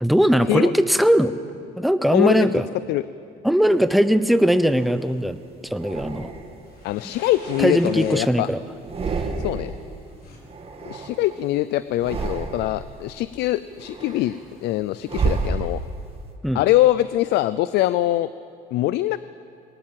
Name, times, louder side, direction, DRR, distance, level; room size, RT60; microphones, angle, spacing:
voice 1, 0.0-1.4 1.8-2.7 3.4-5.4 5.6-6.3 7.6-8.6 16.4-16.6, equal, ahead, 12 dB, 0.8 m, -19 dB
voice 2, 2.1-2.5 2.9-3.0 6.8-8.5 9.4-9.7 10.8-15.8 16.5-18.3 18.7-19.2, left 15 dB, 80° left, 15 dB, 0.5 m, -23 dB
sound 1, 3.9-5.1 5.7-6.7 7.2-8.4 8.7-9.9 10.1-11.5 11.9-12.9 13.4-16.1, right 4 dB, 35° right, 2.3 m, -31 dB
sound 2, 4.7-10.4, left 3 dB, 65° left, 4.5 m, -50 dB
20.5 x 19.0 x 7.7 m, 2.6 s
cardioid pair, 110°, 17 cm